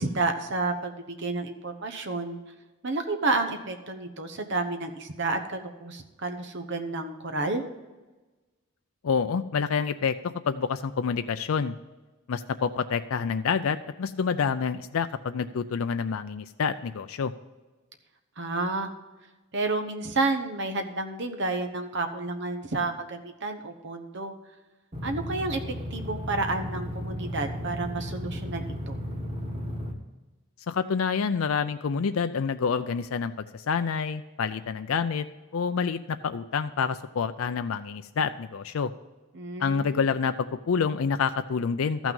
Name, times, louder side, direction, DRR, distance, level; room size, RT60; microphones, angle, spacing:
voice 1, 0.0-2.4 2.8-7.6 18.4-18.9 19.5-24.3 25.0-25.6 25.9-29.0 39.3-40.0, right 3 dB, 55° right, 6 dB, 1.1 m, -30 dB
voice 2, 9.0-11.7 12.3-17.3 30.7-35.3 35.5-38.9 39.6-42.1, left 6 dB, 75° left, 9 dB, 0.4 m, -28 dB
sound 1, 24.9-29.9, equal, 30° right, 1.6 m, -34 dB
13.5 x 6.1 x 5.4 m, 1.2 s
head